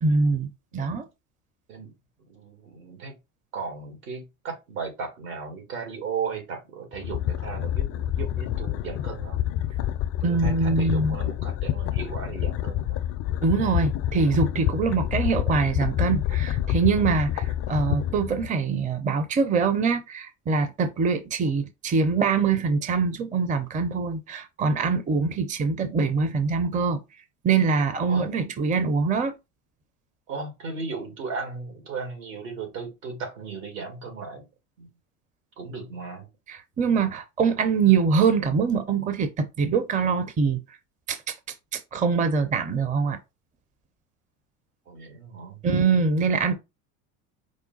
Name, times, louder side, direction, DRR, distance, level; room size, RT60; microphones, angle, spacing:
voice 1, 0.0-1.1 10.2-11.2 13.4-27.0 27.4-29.3 36.5-40.6 41.1-41.3 41.7-43.2 45.6-46.5, right 5 dB, 20° right, 0.5 m, -24 dB
voice 2, 2.2-3.2 3.5-9.4 10.2-13.0 21.4-21.5 28.1-28.3 30.3-34.4 34.8-34.9 35.6-36.3 44.9-45.6, right 5 dB, 75° right, 2.1 m, -36 dB
sound 1, 6.9-18.5, left 12 dB, 35° left, 0.4 m, -28 dB
4.8 x 2.2 x 3.9 m
hypercardioid pair, 85°, 43 cm